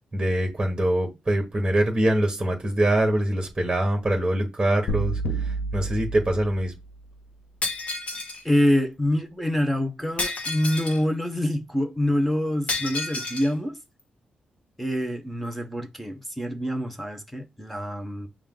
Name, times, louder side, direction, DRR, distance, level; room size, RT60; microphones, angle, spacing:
voice 1, 0.1-6.7, right 1 dB, 15° right, 1.2 m, -24 dB
sound 1, 4.9-7.0, right 3 dB, 75° left, 0.7 m, -30 dB
Shatter, 7.6-8.4 10.2-11.0 12.7-13.5, left 3 dB, 50° left, 1.2 m, -30 dB
voice 2, 8.4-13.8 14.8-18.3, left 1 dB, 5° left, 0.7 m, -26 dB
6.3 x 2.3 x 3.7 m
wide cardioid pair, 130°, 3 cm